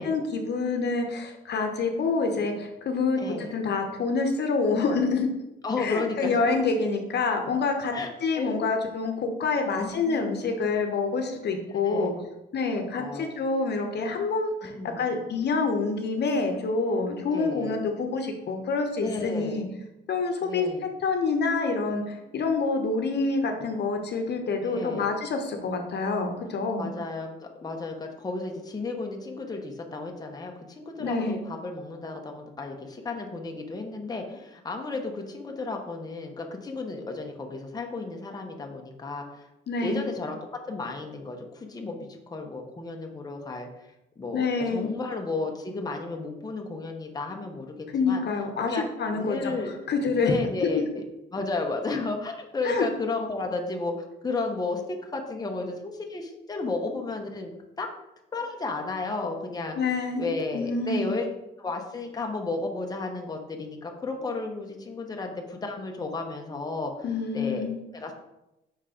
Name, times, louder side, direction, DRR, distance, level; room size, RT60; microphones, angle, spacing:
voice 1, 0.0-5.3 5.8-7.9 8.2-12.1 12.5-19.6 20.1-20.7 21.0-26.9 31.0-31.4 39.7-40.1 44.3-44.9 47.9-50.3 50.6-50.7 52.6-52.8 59.8-60.3 60.5-61.1 67.0-67.8, left 4 dB, 55° left, 4 dB, 1.0 m, -27 dB
voice 2, 3.2-3.5 5.6-6.6 7.9-8.6 9.8-10.2 11.8-12.2 13.0-13.3 14.6-15.0 17.3-17.8 19.0-19.7 20.4-20.8 24.6-25.1 26.5-39.5 39.8-48.2 48.7-48.8 49.2-49.7 50.2-51.0 51.3-57.5 57.8-57.9 58.3-59.9 60.2-61.3 61.6-66.9 67.3-67.6 67.9-68.1, left 3 dB, 20° left, 2 dB, 0.9 m, -33 dB
5.6 x 3.6 x 5.0 m, 0.93 s
cardioid pair, 90°, 20 cm